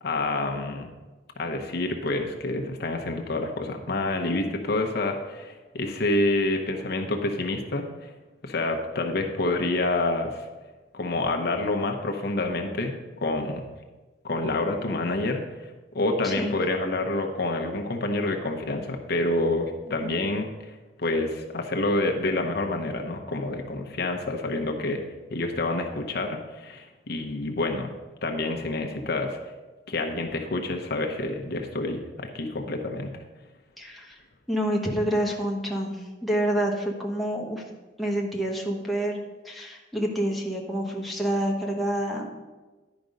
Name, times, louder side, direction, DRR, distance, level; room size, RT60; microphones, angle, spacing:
voice 1, 0.0-0.9 1.4-8.1 8.4-10.5 10.9-13.6 14.2-15.4 15.9-20.5 21.0-25.0 25.3-27.9 28.2-29.4 29.9-33.1, left 2 dB, 60° left, 3 dB, 0.9 m, -28 dB
voice 2, 16.2-16.5 20.0-20.1 33.8-34.2 34.5-37.6 38.0-42.3, right 1 dB, ahead, -1 dB, 1.1 m, -28 dB
10.5 x 5.1 x 5.1 m, 1.2 s
head